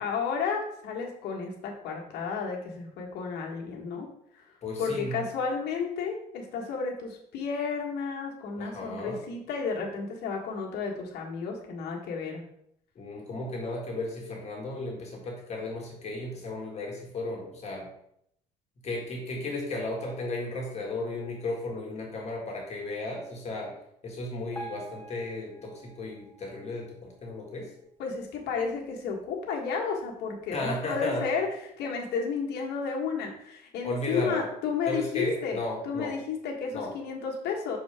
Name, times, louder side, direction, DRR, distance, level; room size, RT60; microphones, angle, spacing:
voice 1, 0.0-4.1 4.8-12.4 28.0-31.5 31.8-35.6 35.8-37.8, left 5 dB, 75° left, -1 dB, 1.5 m, -32 dB
voice 2, 4.6-5.2 8.6-9.2 12.9-17.9 18.8-23.7 24.0-27.7 30.5-31.3 33.8-34.5 34.8-36.1 36.7-36.9, left 2 dB, 40° left, -1 dB, 1.8 m, -34 dB
Piano, 24.5-27.6 28.2-28.3 28.6-28.7 29.4-29.5 30.1-30.2, right 3 dB, 15° left, 0.9 m, -46 dB
6.5 x 4.4 x 3.5 m, 0.74 s
cardioid pair, 110°, 17 cm